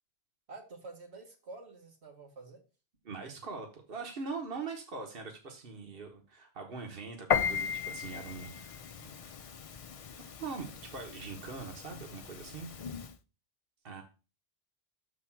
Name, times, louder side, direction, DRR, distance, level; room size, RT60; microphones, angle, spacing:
voice 1, 0.5-2.6 12.4-12.7, right 3 dB, 85° right, 1 dB, 1.8 m, -49 dB
voice 2, 3.0-9.3 10.2-12.7 13.8-14.0, right 4 dB, 60° right, 3 dB, 1.4 m, -42 dB
Piano, 7.3-13.1, left 7 dB, 50° left, 0.4 m, -36 dB
6.6 x 4.3 x 5.9 m, 0.33 s
omnidirectional pair, 1.1 m